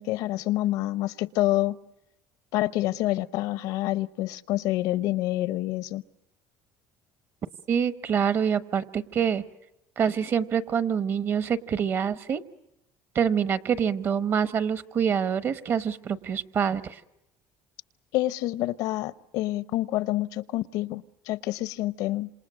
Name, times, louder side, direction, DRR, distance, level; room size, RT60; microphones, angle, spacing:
voice 1, 0.0-1.8 2.5-6.0 18.1-22.3, left 16 dB, 75° left, 17 dB, 0.8 m, -27 dB
voice 2, 7.7-9.4 10.0-12.4 13.1-17.0, right 7 dB, 40° right, 14 dB, 1.1 m, -26 dB
27.5 x 27.0 x 6.3 m, 0.92 s
cardioid pair, 135°, 7 cm